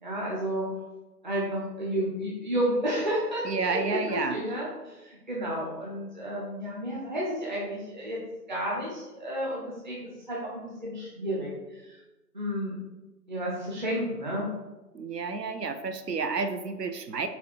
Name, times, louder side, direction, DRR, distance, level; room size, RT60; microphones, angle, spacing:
voice 1, 0.0-0.7 1.2-8.2 8.5-12.0 12.3-12.7 13.3-14.5, equal, 30° right, -5 dB, 1.0 m, -31 dB
voice 2, 3.4-4.4 14.9-17.3, right 4 dB, 75° right, 9 dB, 0.8 m, -30 dB
7.0 x 4.4 x 4.5 m, 1.1 s
figure-of-eight pair, 155°, 49 cm